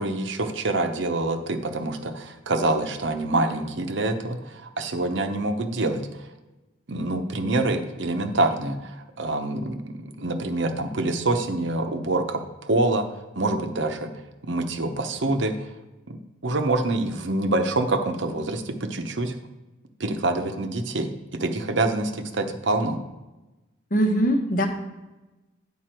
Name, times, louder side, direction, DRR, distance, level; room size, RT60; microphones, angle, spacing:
voice 1, 0.0-6.1 6.9-13.1 13.4-14.1 14.4-15.5 16.1-16.2 16.4-19.4 20.0-23.0, right 2 dB, 70° right, 6 dB, 0.8 m, -26 dB
voice 2, 23.9-24.7, equal, 45° left, 4 dB, 1.0 m, -21 dB
9.5 x 5.6 x 4.5 m, 1.1 s
head